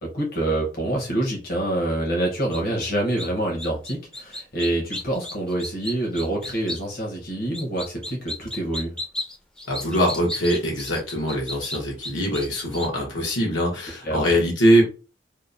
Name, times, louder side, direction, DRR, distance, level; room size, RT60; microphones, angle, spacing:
voice 1, 0.0-8.9 14.0-14.3, right 1 dB, 55° left, 0.9 m, -26 dB
sound 1, 2.5-2.9 3.2-3.3 3.6-6.8 7.5-12.9, left 1 dB, 5° left, 0.4 m, -33 dB
voice 2, 9.7-14.8, equal, 90° left, 1.0 m, -22 dB
2.8 x 2.1 x 2.5 m
head